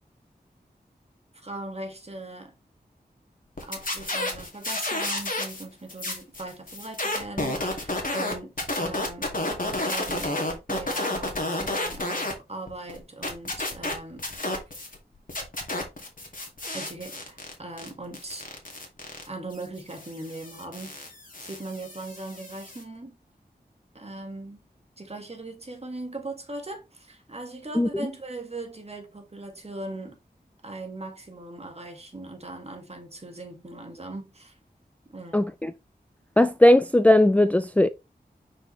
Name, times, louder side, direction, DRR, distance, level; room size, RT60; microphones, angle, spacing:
voice 1, 1.3-2.6 3.6-9.3 9.8-10.4 10.7-14.3 16.7-18.5 19.3-21.1 21.4-23.2 23.9-24.6 25.0-30.2 30.6-34.6 35.1-35.5, right 2 dB, 40° right, 1.8 m, -39 dB
sound 1, 3.6-5.6 5.9-12.3 12.7-15.0 15.3-22.8, left 2 dB, 55° left, 2.2 m, -31 dB
voice 2, 35.3-35.7 36.4-37.9, left 1 dB, 10° left, 0.4 m, -18 dB
5.9 x 5.1 x 3.2 m
wide cardioid pair, 55°, 17 cm